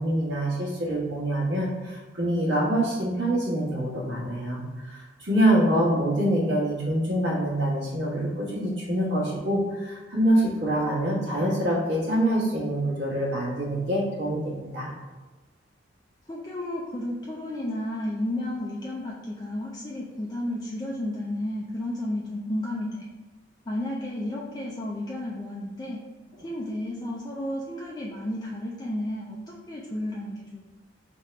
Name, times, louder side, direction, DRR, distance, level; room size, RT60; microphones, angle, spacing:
voice 1, 0.0-14.9, right 1 dB, 65° right, -4 dB, 1.4 m, -25 dB
voice 2, 16.3-23.0 23.7-26.0 26.4-30.8, left 1 dB, 20° left, -3 dB, 0.4 m, -32 dB
3.6 x 2.9 x 4.4 m, 1.2 s
head